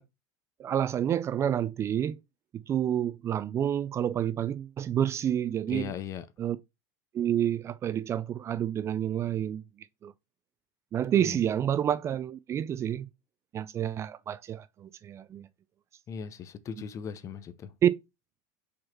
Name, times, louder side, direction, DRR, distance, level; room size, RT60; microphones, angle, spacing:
voice 1, 0.6-2.2 2.7-5.9 6.4-6.6 7.1-9.6 10.0-10.1 10.9-13.1 13.5-15.5 17.8-17.9, right 10 dB, 25° right, 0.4 m, -29 dB
voice 2, 5.7-6.2 11.2-11.4 16.1-17.7, left 7 dB, 30° left, 0.7 m, -38 dB
5.2 x 4.2 x 4.4 m
supercardioid pair, 135°, 10 cm